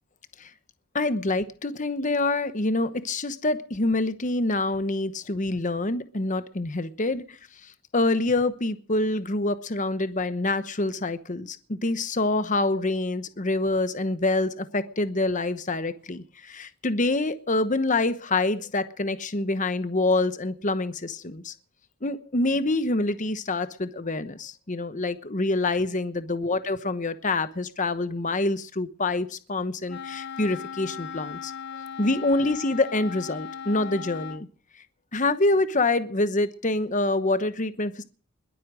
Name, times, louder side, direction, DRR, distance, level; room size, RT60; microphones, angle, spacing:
voice 1, 0.9-21.5 22.0-31.5 32.0-34.5 35.1-38.0, left 2 dB, 35° left, 12 dB, 1.0 m, -26 dB
Wind instrument woodwind instrument, 29.9-34.5, left 7 dB, 50° left, 0.7 m, -38 dB
21.5 x 8.5 x 6.2 m, 0.43 s
head